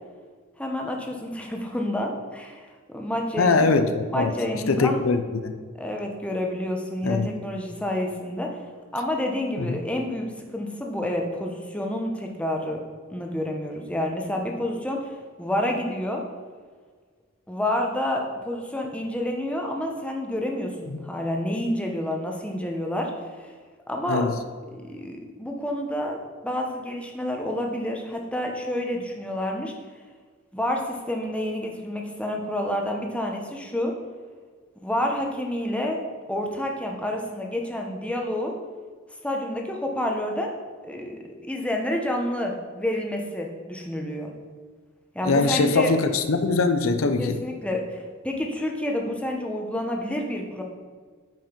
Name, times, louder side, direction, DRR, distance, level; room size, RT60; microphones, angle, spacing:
voice 1, 0.6-2.6 2.9-3.7 4.1-5.0 5.8-8.5 8.9-12.8 13.1-15.1 15.4-16.2 17.5-23.1 23.4-23.5 23.9-24.3 24.7-26.2 26.4-29.7 30.5-33.9 34.8-38.5 39.2-40.5 40.8-44.3 45.1-45.9 47.2-50.6, left 1 dB, 5° left, 1 dB, 1.0 m, -29 dB
voice 2, 3.4-5.5 7.0-7.3 9.6-9.7 20.9-21.0 24.1-24.3 45.2-47.4, left 3 dB, 80° left, 8 dB, 0.6 m, -22 dB
9.1 x 5.2 x 5.2 m, 1.5 s
head